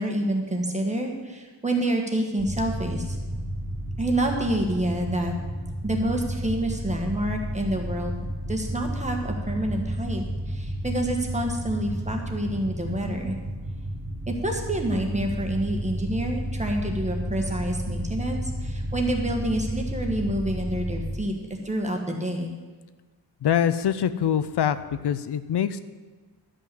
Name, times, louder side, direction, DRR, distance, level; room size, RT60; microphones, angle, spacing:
voice 1, 0.0-3.2 4.0-5.3 5.8-8.1 8.5-13.4 14.3-22.5, right 1 dB, 15° right, 2 dB, 1.5 m, -28 dB
sound 1, 2.4-21.2, equal, 35° right, 2.1 m, -32 dB
voice 2, 23.4-24.8 25.0-25.8, left 9 dB, 75° left, 13 dB, 0.6 m, -24 dB
12.0 x 5.6 x 7.7 m, 1.3 s
wide cardioid pair, 135°, 40 cm